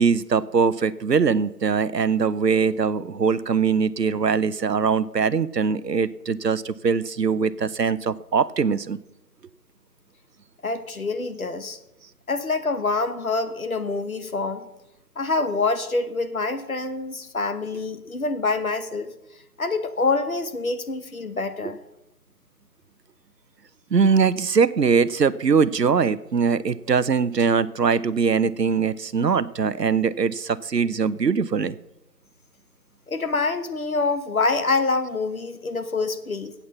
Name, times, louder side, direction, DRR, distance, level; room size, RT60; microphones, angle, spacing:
voice 1, 0.0-9.0 23.9-31.8, right 5 dB, 80° right, 17 dB, 0.8 m, -22 dB
voice 2, 10.6-11.8 12.3-14.7 15.2-19.1 19.6-21.8 33.1-36.5, left 3 dB, 60° left, 11 dB, 1.3 m, -26 dB
12.0 x 8.5 x 6.9 m, 0.93 s
figure-of-eight pair, 165°, 48 cm